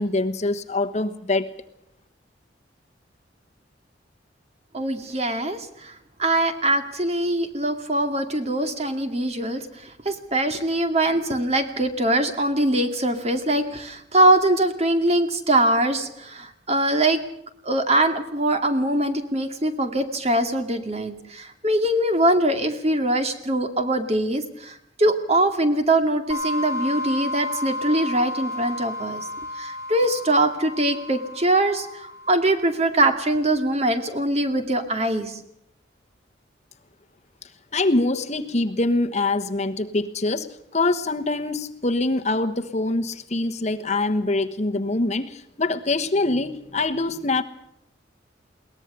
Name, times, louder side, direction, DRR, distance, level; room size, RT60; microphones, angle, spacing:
voice 1, 0.0-1.5 37.7-40.5 40.7-47.4, left 2 dB, 35° left, 8 dB, 1.2 m, -24 dB
voice 2, 4.7-17.2 17.6-29.3 29.6-35.4, right 1 dB, 35° right, 7 dB, 2.3 m, -22 dB
sound 1, 26.3-32.8, left 1 dB, 15° right, 4.4 m, -32 dB
22.0 x 19.0 x 6.8 m, 0.77 s
head